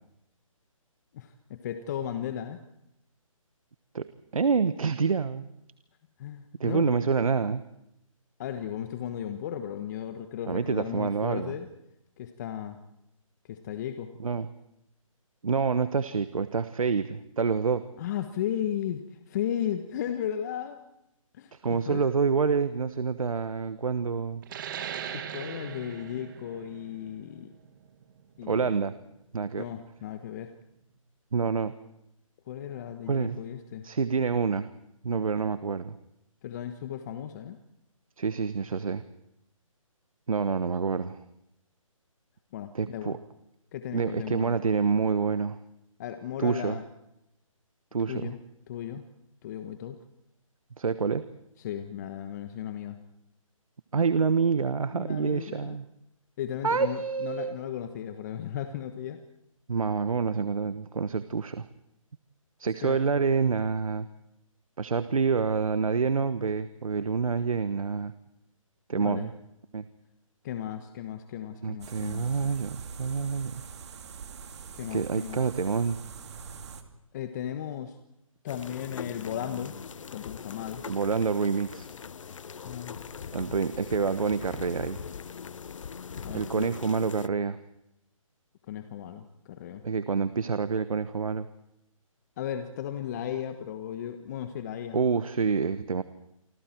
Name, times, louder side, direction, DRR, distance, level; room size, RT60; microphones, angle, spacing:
voice 1, 1.1-2.6 6.2-6.9 8.4-11.7 12.2-12.8 13.5-14.1 18.0-20.8 21.3-22.0 25.1-27.5 28.4-28.8 29.6-30.5 32.5-33.8 36.4-37.6 42.5-43.2 43.7-44.6 46.0-46.8 48.1-48.4 48.7-49.0 49.4-50.0 51.6-53.0 54.9-55.8 56.4-59.2 62.8-63.0 68.9-69.3 70.4-72.3 74.7-75.4 77.1-78.0 78.4-79.8 80.1-80.8 82.6-83.0 86.2-86.7 88.7-89.8 92.4-95.0, left 10 dB, 30° left, 8 dB, 1.3 m, -35 dB
voice 2, 4.3-5.4 6.6-7.6 10.5-11.5 14.2-14.5 15.4-17.8 21.5-24.4 28.5-28.9 29.3-29.7 31.3-31.7 33.1-33.4 33.8-34.7 35.0-36.0 38.2-39.0 40.3-41.2 42.7-43.2 43.9-45.6 46.4-46.8 47.9-48.3 50.8-51.2 53.9-55.8 56.6-57.6 59.7-61.7 62.6-64.1 64.8-68.1 68.9-69.3 69.7-69.8 71.6-73.6 74.9-76.0 80.9-81.9 83.3-85.0 86.3-87.6 89.8-91.5 94.9-96.0, right 5 dB, 75° right, 13 dB, 1.1 m, -27 dB
sound 1, 24.4-29.6, right 8 dB, 35° right, 2.0 m, -40 dB
sound 2, 71.8-76.8, right 6 dB, 50° right, 2.4 m, -44 dB
sound 3, 78.5-87.3, left 6 dB, 65° left, 0.8 m, -41 dB
28.0 x 25.0 x 4.5 m, 0.83 s
figure-of-eight pair, 150°, 18 cm